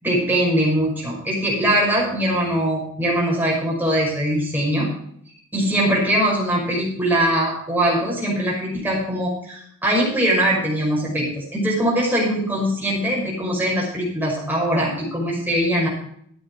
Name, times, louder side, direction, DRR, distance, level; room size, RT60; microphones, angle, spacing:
voice 1, 0.0-4.9 5.5-15.9, right 1 dB, 10° right, -4 dB, 5.7 m, -21 dB
13.5 x 9.1 x 4.6 m, 0.64 s
head